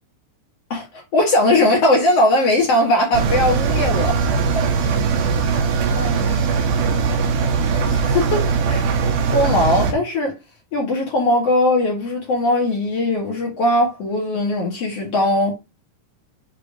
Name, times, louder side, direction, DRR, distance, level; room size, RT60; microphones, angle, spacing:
voice 1, 0.7-4.2 4.5-4.6 5.9-6.4 7.9-8.9 9.2-10.3 10.7-15.5, left 1 dB, 55° left, 1.9 m, -19 dB
Engine, 3.1-9.9, right 5 dB, 75° right, 2.6 m, -20 dB
6.9 x 2.9 x 4.9 m
omnidirectional pair, 4.6 m